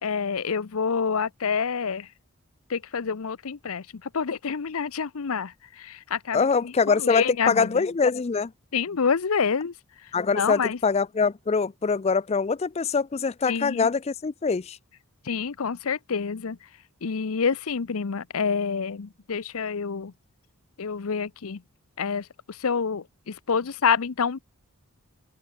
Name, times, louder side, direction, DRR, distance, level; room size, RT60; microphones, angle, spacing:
voice 1, 0.0-2.1 2.7-7.8 8.7-9.7 10.3-10.8 13.4-13.9 15.2-16.6 17.0-20.1 20.8-21.6 22.0-24.4, left 6 dB, 70° left, 0.7 m, -27 dB
voice 2, 6.3-8.5 10.1-14.8, left 5 dB, 30° left, 0.4 m, -24 dB
open air
head